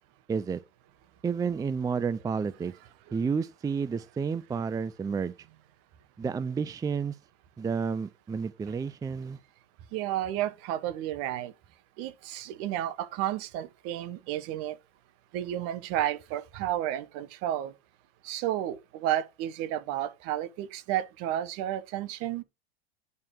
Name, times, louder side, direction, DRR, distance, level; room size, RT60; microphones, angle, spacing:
voice 1, 0.3-0.6 1.2-2.7 3.1-5.3 6.2-7.1 7.6-9.4, right 5 dB, 10° right, 0.5 m, -30 dB
voice 2, 9.9-11.5 12.0-14.8 15.3-17.7 18.2-22.4, right 12 dB, 50° right, 1.4 m, -32 dB
10.5 x 5.8 x 4.7 m
hypercardioid pair, 95°, 30 cm